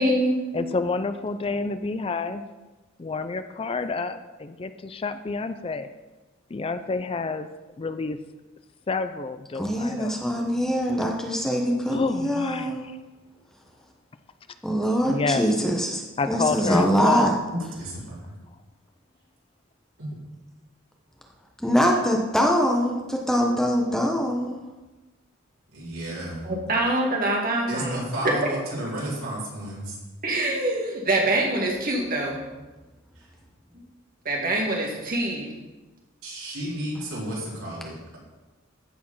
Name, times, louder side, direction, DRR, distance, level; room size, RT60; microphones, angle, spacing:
voice 1, 0.0-0.4 17.5-17.6 26.4-28.0 30.2-32.4 34.3-35.5, right 1 dB, 45° right, -1 dB, 2.1 m, -24 dB
voice 2, 0.5-2.4 3.0-5.9 6.5-7.5 7.8-8.2 8.9-10.1 11.9-12.7 15.1-15.4 16.2-17.3, left 4 dB, 25° left, 11 dB, 0.4 m, -29 dB
voice 3, 9.5-12.8 14.6-17.3 21.6-24.6, equal, 5° left, 0 dB, 1.0 m, -23 dB
voice 4, 17.8-18.4 20.0-20.1 25.7-26.4 27.7-30.0 33.2-33.3 36.2-38.2, right 1 dB, 85° right, -6 dB, 4.1 m, -32 dB
14.5 x 4.9 x 5.5 m, 1.2 s
head